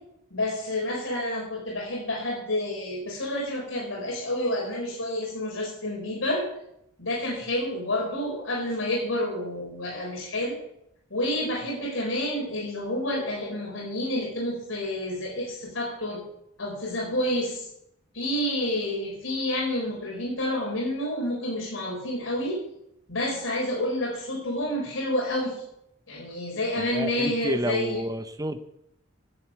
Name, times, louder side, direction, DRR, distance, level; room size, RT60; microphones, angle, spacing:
voice 1, 0.3-6.5 7.0-10.6 11.1-16.2 16.6-17.7 18.1-22.6 23.1-25.6 26.1-28.0, left 1 dB, 85° left, -3 dB, 4.5 m, -29 dB
voice 2, 26.8-28.6, right 1 dB, 20° right, 9 dB, 0.7 m, -30 dB
11.0 x 7.9 x 7.4 m, 0.76 s
head